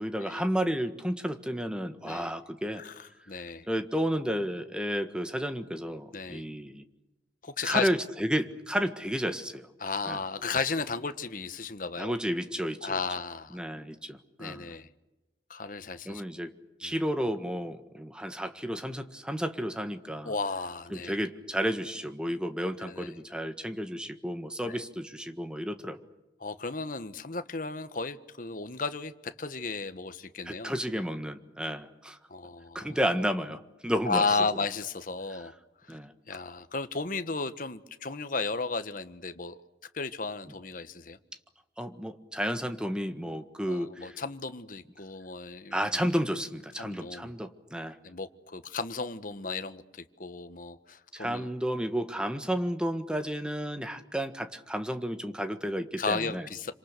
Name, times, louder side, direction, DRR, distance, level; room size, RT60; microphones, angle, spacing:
voice 1, 0.0-2.8 3.7-6.8 7.6-9.7 10.0-10.2 12.0-13.0 13.5-14.7 16.0-16.5 16.8-20.3 20.9-26.0 30.4-32.2 32.7-34.4 35.9-36.1 41.8-44.1 45.7-48.0 51.1-56.5, equal, 5° right, 8 dB, 1.6 m, -32 dB
voice 2, 2.7-3.7 6.1-6.4 7.4-7.9 9.8-12.1 12.8-13.6 14.4-14.9 15.5-16.2 16.8-16.9 20.2-21.1 22.8-23.1 24.6-24.8 26.4-30.7 32.3-33.0 34.0-35.5 35.9-36.0 36.3-39.6 39.9-41.2 43.6-46.0 46.8-47.3 48.0-51.5 56.0-56.7, left 4 dB, 50° left, 10 dB, 1.4 m, -34 dB
27.5 x 26.0 x 6.8 m, 1.0 s
head